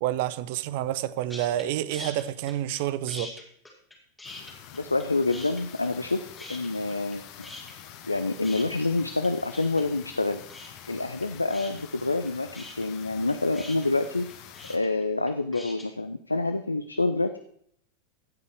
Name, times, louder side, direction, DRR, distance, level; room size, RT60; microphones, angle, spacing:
voice 1, 0.0-3.3, right 13 dB, 50° right, 0.5 m, -29 dB
sound 1, 1.3-1.6 1.9-2.8 3.1-5.0 5.3-6.1 6.4-7.2 7.4-15.9, left 2 dB, 5° left, 2.3 m, -43 dB
sound 2, 4.2-14.8, left 10 dB, 45° left, 1.0 m, -46 dB
voice 2, 4.7-7.2 8.0-10.4 10.9-14.3 14.7-17.4, left 2 dB, 80° left, 0.4 m, -27 dB
16.0 x 5.5 x 4.5 m
figure-of-eight pair, 90°, 0 cm